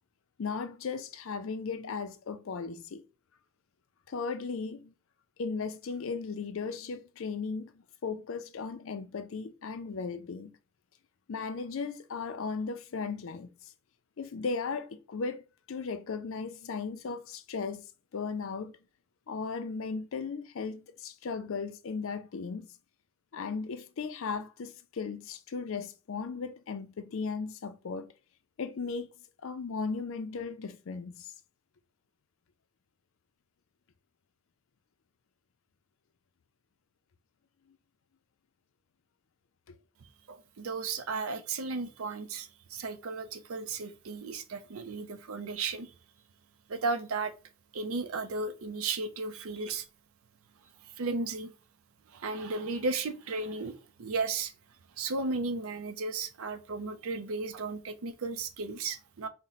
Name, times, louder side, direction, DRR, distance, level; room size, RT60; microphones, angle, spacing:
voice 1, 0.4-3.0 4.1-4.9 5.4-7.7 8.0-10.6 11.3-13.5 14.2-15.4 15.7-17.8 18.1-18.7 19.3-22.7 23.3-28.1 28.6-29.1 29.4-31.3 37.7-37.8, left 5 dB, 60° left, 0.4 m, -36 dB
voice 2, 40.0-45.9 46.7-47.3 47.7-49.9 50.8-51.5 52.1-54.5 55.0-59.3, right 3 dB, 65° right, 0.5 m, -35 dB
4.2 x 2.1 x 3.9 m
head